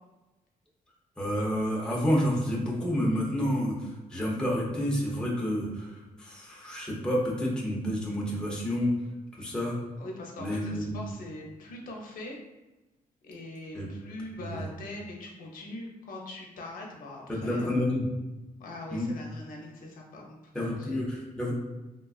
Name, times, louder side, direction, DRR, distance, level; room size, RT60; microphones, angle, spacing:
voice 1, 1.2-3.8 4.1-8.9 9.3-9.8 10.4-11.0 13.7-13.8 14.4-14.6 17.3-18.1 18.9-19.1 20.5-21.5, equal, 5° left, -4 dB, 0.5 m, -29 dB
voice 2, 10.0-12.4 13.2-17.8 18.6-21.0, left 2 dB, 75° left, -1 dB, 0.6 m, -42 dB
3.2 x 2.3 x 2.3 m, 1.1 s
cardioid pair, 150°, 15 cm